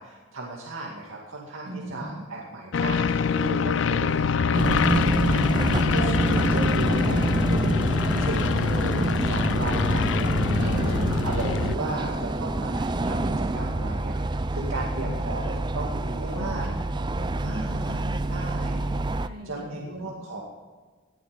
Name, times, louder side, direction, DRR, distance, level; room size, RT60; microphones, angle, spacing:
voice 1, 0.0-10.8 11.2-16.7 17.4-18.0 18.3-18.9 19.4-20.4, right 2 dB, 75° right, -3 dB, 2.3 m, -35 dB
voice 2, 1.6-2.2 10.6-11.1 11.8-12.0 12.7-13.0 15.0-15.2 16.3-18.1 19.1-20.1, right 1 dB, 50° right, -1 dB, 5.7 m, -38 dB
sound 1, 2.7-11.8, left 6 dB, 60° left, 0.4 m, -25 dB
sound 2, 4.5-19.3, right 2 dB, 20° right, 0.4 m, -27 dB
18.5 x 11.5 x 5.2 m, 1.4 s
head